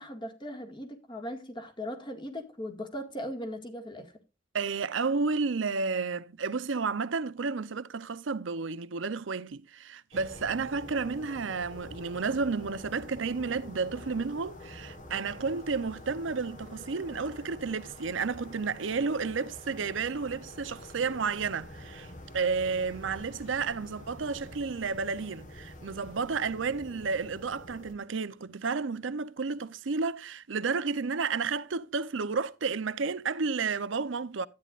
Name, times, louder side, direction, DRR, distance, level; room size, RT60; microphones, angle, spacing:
voice 1, 0.0-4.1, equal, 25° left, 1.9 m, -39 dB
voice 2, 4.5-34.5, right 4 dB, 85° right, 0.7 m, -31 dB
sound 1, 10.1-27.9, left 1 dB, 45° left, 1.3 m, -47 dB
13.0 x 9.6 x 2.4 m
head